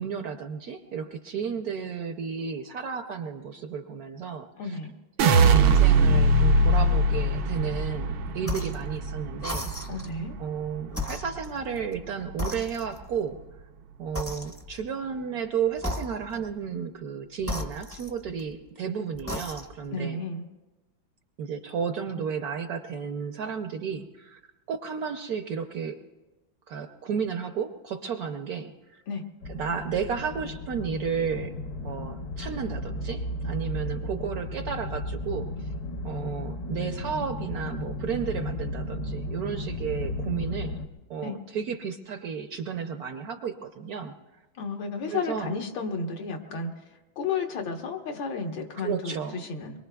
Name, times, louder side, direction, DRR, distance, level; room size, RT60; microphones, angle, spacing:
voice 1, 0.0-4.8 5.2-9.7 10.4-13.4 14.0-20.2 21.4-24.4 24.7-26.0 26.7-29.0 29.5-31.5 31.8-35.7 36.0-40.8 41.1-44.1 45.1-45.5 48.8-49.4, right 6 dB, 70° right, 7 dB, 0.9 m, -32 dB
voice 2, 4.6-4.9 9.9-10.4 19.9-20.4 29.1-29.2 41.2-41.4 44.6-46.7 47.2-49.8, left 4 dB, 80° left, 3 dB, 1.9 m, -32 dB
sound 1, 5.2-11.4 11.7-12.3, right 3 dB, 90° right, 1.5 m, -22 dB
sound 2, 8.4-8.9 9.4-10.2 10.9-12.0 12.4-13.2 14.1-14.9 15.8-16.5 17.4-18.5 19.1-19.9, left 1 dB, 15° left, 0.4 m, -35 dB
sound 3, 29.4-40.9, left 1 dB, 60° left, 1.2 m, -34 dB
24.5 x 22.0 x 2.3 m, 1.1 s
omnidirectional pair, 2.1 m